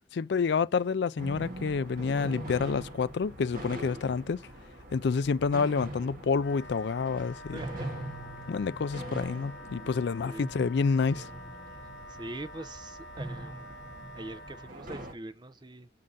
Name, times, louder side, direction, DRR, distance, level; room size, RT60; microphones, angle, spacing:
voice 1, 0.1-4.4 4.9-7.6 8.5-11.3, left 5 dB, 60° left, 0.4 m, -28 dB
sound 1, 1.2-15.1, right 1 dB, 45° right, 1.8 m, -42 dB
Wind instrument woodwind instrument, 6.4-14.7, left 2 dB, 80° left, 1.1 m, -48 dB
voice 2, 7.5-7.9 8.4-8.5 10.2-10.5 12.1-13.7 14.1-15.9, right 2 dB, 25° right, 0.6 m, -43 dB
6.3 x 3.8 x 5.5 m
head